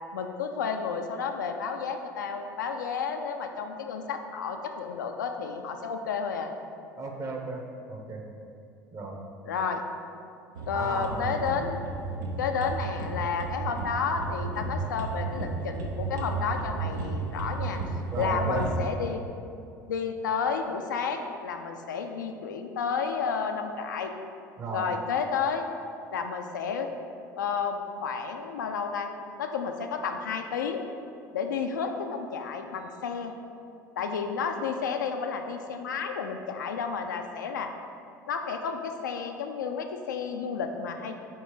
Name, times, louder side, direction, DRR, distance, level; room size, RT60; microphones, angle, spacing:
voice 1, 0.1-6.5 9.4-9.8 10.7-11.9 12.4-17.8 18.2-19.2 19.9-24.1 24.7-25.7 26.1-26.9 27.4-29.1 29.4-30.8 31.3-33.3 34.0-37.7 38.3-41.2, left 6 dB, 75° left, 5 dB, 0.4 m, -31 dB
voice 2, 7.0-8.2 8.9-9.2 10.7-11.4 18.1-18.7 24.6-24.9, right 3 dB, 30° right, 1 dB, 0.9 m, -35 dB
sound 1, 10.6-18.7, right 3 dB, 70° right, 0.7 m, -33 dB
4.4 x 4.4 x 4.9 m, 2.5 s
figure-of-eight pair, 65°, 10 cm